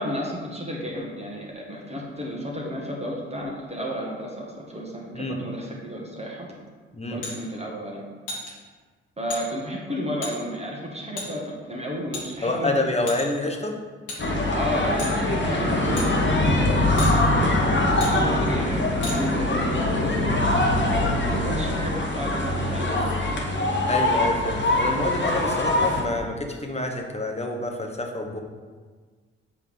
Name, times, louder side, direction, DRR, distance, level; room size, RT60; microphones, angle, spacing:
voice 1, 0.0-6.5 7.1-8.1 9.2-12.7 14.5-16.2 16.6-17.5 18.1-20.3 21.2-23.3, equal, 20° right, -3 dB, 1.7 m, -32 dB
sound 1, 7.2-7.4 8.3-8.5 9.3-9.4 10.2-10.3 11.2-11.3 12.1-12.6 13.1-13.4 14.1-14.2 15.0-15.2 16.0-16.1 17.0-17.1 18.0-18.1 19.0-19.2, left 2 dB, 75° left, 1.7 m, -33 dB
voice 2, 12.4-13.8 23.9-28.4, left 2 dB, 20° left, 2 dB, 1.3 m, -27 dB
sound 2, 14.2-26.0, left 1 dB, 35° left, 1.5 m, -23 dB
7.6 x 3.5 x 5.2 m, 1.5 s
hypercardioid pair, 40°, 31 cm